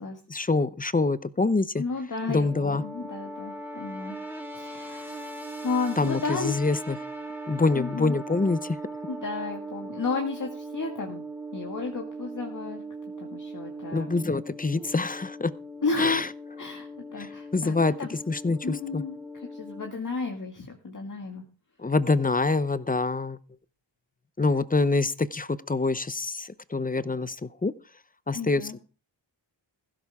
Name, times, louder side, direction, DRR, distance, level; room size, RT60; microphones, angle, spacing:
voice 1, 0.3-1.8 2.3-2.8 6.0-7.0 7.5-8.8 13.9-15.5 16.0-16.3 17.5-17.9 18.3-19.0 21.8-23.4 24.4-27.7 28.3-28.8, left 3 dB, 20° left, 16 dB, 0.7 m, -25 dB
voice 2, 1.8-4.2 4.5-6.6 7.7-8.2 9.1-11.3 11.5-12.8 13.2-14.2 14.9-15.0 15.8-16.2 16.6-18.2 18.6-21.4 28.3-28.7, left 4 dB, 40° left, 2 dB, 2.0 m, -33 dB
sound 1, 2.2-19.9, right 1 dB, 5° right, 3.1 m, -39 dB
15.5 x 13.0 x 3.5 m, 0.35 s
wide cardioid pair, 120°, 46 cm